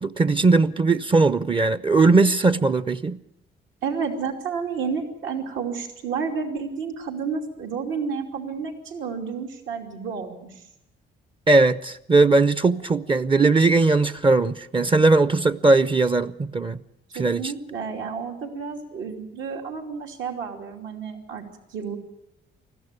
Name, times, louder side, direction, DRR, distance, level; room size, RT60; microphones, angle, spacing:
voice 1, 0.0-3.2 11.5-16.8 17.1-17.5, right 3 dB, 25° right, 14 dB, 0.7 m, -19 dB
voice 2, 3.8-10.7 17.1-21.4 21.7-22.0, right 5 dB, 75° right, 2 dB, 2.9 m, -31 dB
20.0 x 14.5 x 9.7 m, 0.83 s
cardioid pair, 90°, 20 cm